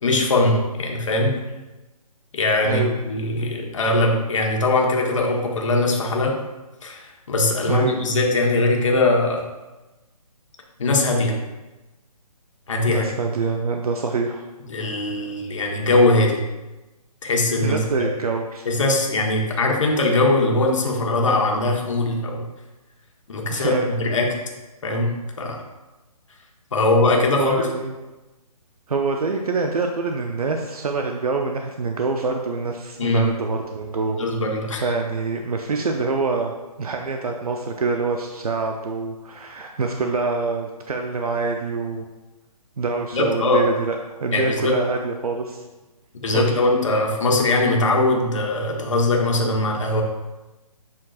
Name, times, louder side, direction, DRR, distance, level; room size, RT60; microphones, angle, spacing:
voice 1, 0.0-1.4 2.3-6.4 6.8-9.4 10.8-11.4 12.7-13.1 14.7-16.4 17.2-17.8 18.6-22.4 23.3-24.3 24.8-25.1 25.4-25.6 26.7-27.7 33.0-33.3 34.2-34.9 43.1-43.7 44.3-44.8 46.2-50.0, left 2 dB, 55° left, 0 dB, 1.3 m, -21 dB
voice 2, 12.9-14.5 17.6-18.7 23.5-23.9 27.4-28.0 28.9-34.2 34.8-36.5 36.8-42.0 42.8-45.6 46.3-46.5, right 4 dB, 70° right, 3 dB, 0.7 m, -25 dB
7.6 x 5.9 x 2.4 m, 1.1 s
hypercardioid pair, 165°, 20 cm